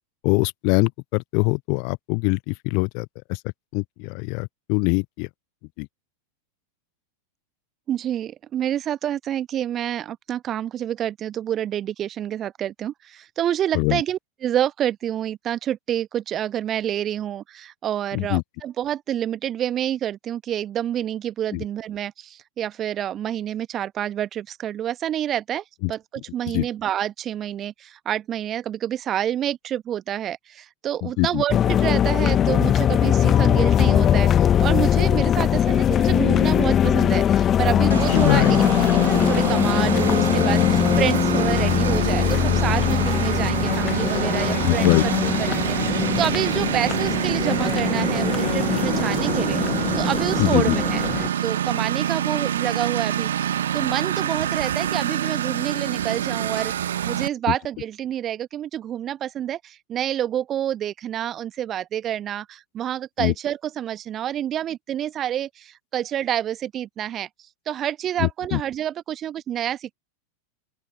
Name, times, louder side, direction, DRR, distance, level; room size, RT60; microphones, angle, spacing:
voice 1, 0.2-3.4 3.7-5.3 5.8-5.9 13.7-14.0 18.1-18.4 21.5-21.6 25.8-25.9 26.5-26.6 31.2-31.4 38.1-38.6 44.6-45.0 50.4-50.8 63.2-63.3 68.2-68.6, left 37 dB, 45° left, 0.5 m, -22 dB
voice 2, 7.9-45.1 45.4-51.0 51.4-53.5 53.7-67.3 67.7-69.9, right 11 dB, 30° right, 1.2 m, -28 dB
sound 1, 31.5-51.3, left 9 dB, 25° left, 0.9 m, -21 dB
Engine, 37.9-57.3, right 10 dB, 65° right, 1.1 m, -26 dB
open air
figure-of-eight pair, 90°, 0 cm